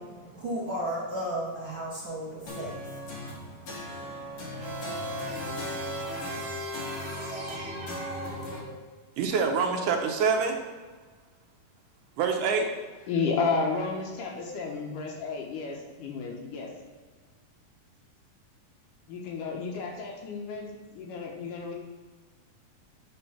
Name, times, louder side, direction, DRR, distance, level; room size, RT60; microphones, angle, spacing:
voice 1, 0.0-6.4, right 1 dB, 50° right, -6 dB, 1.5 m, -37 dB
sound 1, 2.5-8.6, equal, 55° left, 1.8 m, -39 dB
sound 2, 4.6-8.9, equal, 30° right, 1.1 m, -37 dB
voice 2, 9.2-10.6 12.2-12.7, right 5 dB, 75° right, 3 dB, 2.3 m, -25 dB
voice 3, 13.1-16.7 19.1-21.7, left 4 dB, 75° left, 0 dB, 2.7 m, -32 dB
9.4 x 4.1 x 5.7 m, 1.4 s
omnidirectional pair, 3.8 m